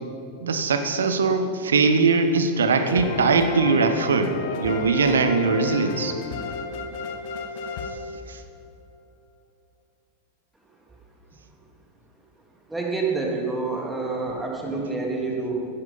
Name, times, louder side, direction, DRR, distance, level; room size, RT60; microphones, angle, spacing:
voice 1, 0.4-6.2 8.3-8.4, right 4 dB, 65° right, 9 dB, 1.1 m, -21 dB
sound 1, 2.8-8.7, left 4 dB, 50° left, 1.3 m, -32 dB
voice 2, 12.7-15.7, right 3 dB, 5° right, -2 dB, 2.8 m, -27 dB
16.0 x 11.5 x 5.6 m, 2.6 s
figure-of-eight pair, 90°, 0 cm